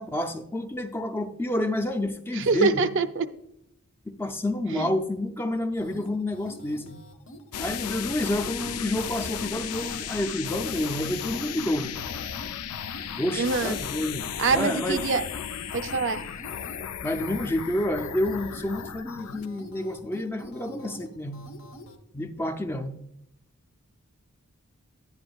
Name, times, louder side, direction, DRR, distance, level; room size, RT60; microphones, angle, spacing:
voice 1, 0.0-2.8 4.1-7.0 7.6-11.9 13.2-15.0 17.0-21.4 22.1-23.0, left 1 dB, 10° left, 6 dB, 0.4 m, -29 dB
voice 2, 2.3-3.3 4.7-4.9 13.4-13.8 14.4-15.2 15.7-16.2, right 4 dB, 55° right, 10 dB, 0.5 m, -25 dB
sound 1, 5.8-22.0, equal, 65° left, 1.0 m, -47 dB
sound 2, 7.5-19.5, left 8 dB, 85° left, 0.5 m, -35 dB
10.5 x 9.6 x 2.3 m, 0.78 s
head